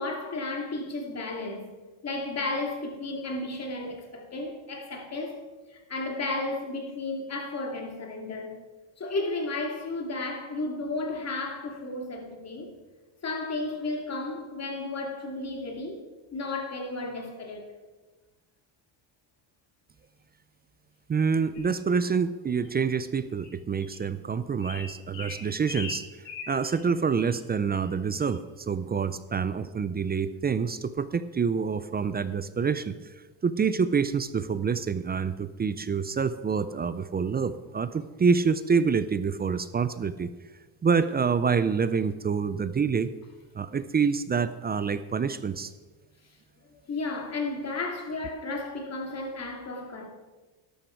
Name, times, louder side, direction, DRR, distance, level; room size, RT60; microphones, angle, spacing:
voice 1, 0.0-1.7 2.0-5.4 5.7-8.6 9.0-12.7 13.2-16.0 16.3-17.6 46.9-50.1, left 2 dB, 30° left, 2.6 m, -33 dB
voice 2, 21.1-26.1 26.5-32.9 33.4-40.3 40.8-43.1 43.5-45.7, right 5 dB, 20° right, 0.4 m, -27 dB
sound 1, 21.5-21.7 22.6-22.7 23.3-23.5 23.8-24.0 24.6-26.8 27.2-27.3 27.7-27.9 28.2-28.4, left 5 dB, 65° left, 3.8 m, -41 dB
13.0 x 11.5 x 4.6 m
cardioid pair, 115°, 48 cm